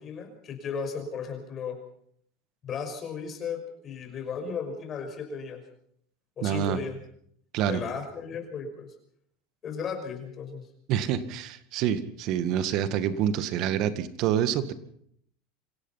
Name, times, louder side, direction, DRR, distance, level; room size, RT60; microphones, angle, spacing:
voice 1, 0.0-1.8 2.6-5.6 6.4-7.0 7.7-8.9 9.6-10.7, left 6 dB, 30° left, 6 dB, 5.9 m, -35 dB
voice 2, 6.4-6.8 7.5-7.8 10.9-14.7, right 10 dB, 50° right, 12 dB, 1.9 m, -27 dB
27.0 x 16.5 x 5.8 m, 0.66 s
supercardioid pair, 140°, 0 cm